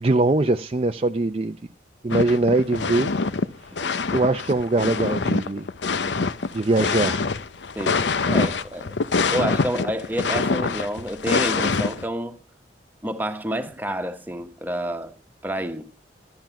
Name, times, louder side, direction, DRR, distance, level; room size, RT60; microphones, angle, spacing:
voice 1, 0.0-1.6 2.0-3.1 4.1-5.7 6.5-7.3, right 2 dB, 35° right, 0.5 m, -22 dB
sound 1, 2.1-3.5 3.8-12.0, left 4 dB, 85° left, 0.7 m, -25 dB
voice 2, 7.8-8.9 9.3-12.4 13.0-15.2 15.4-15.8, right 1 dB, 10° right, 1.2 m, -29 dB
13.0 x 10.5 x 5.9 m
head